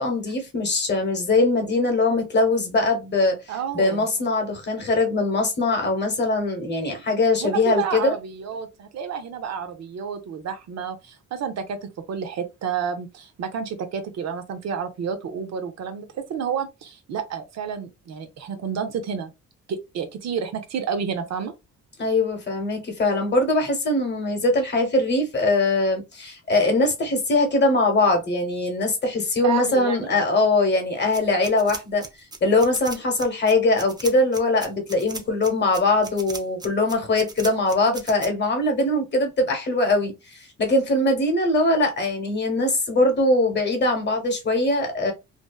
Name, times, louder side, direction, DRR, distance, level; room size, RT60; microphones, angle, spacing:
voice 1, 0.0-3.4 3.7-8.1 22.0-32.0 32.4-45.1, left 2 dB, 35° left, 1.1 m, -22 dB
voice 2, 3.5-4.1 7.4-19.3 19.7-21.5 29.4-30.1, right 7 dB, 60° right, 0.6 m, -30 dB
sound 1, 31.1-38.3, right 3 dB, 15° right, 0.4 m, -37 dB
2.6 x 2.2 x 2.3 m
cardioid pair, 90°, 30 cm